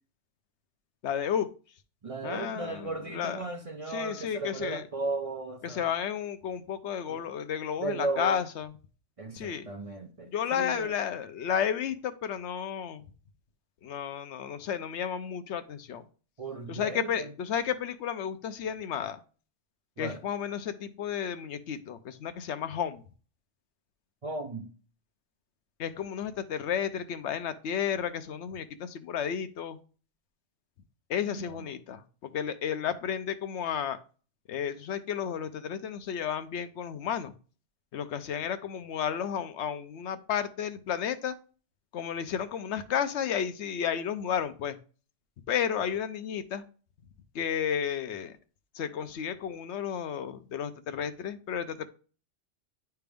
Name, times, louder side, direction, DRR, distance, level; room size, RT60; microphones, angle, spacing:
voice 1, 1.0-1.5 2.2-3.4 3.9-4.8 5.6-8.7 9.3-9.7 10.3-13.0 13.8-16.1 16.7-19.2 20.0-23.0 25.8-29.8 31.1-34.0 34.5-37.3 37.9-41.3 41.9-44.8 45.5-46.6 47.3-48.3 48.7-51.9, left 8 dB, 80° left, 0.9 m, -32 dB
voice 2, 2.0-5.8 7.1-7.2 7.8-8.4 9.2-10.9 16.4-17.3 20.0-20.2 24.2-24.7 31.2-31.7 45.8-45.9, right 3 dB, 40° right, 0.6 m, -36 dB
9.9 x 3.4 x 3.4 m
omnidirectional pair, 1.2 m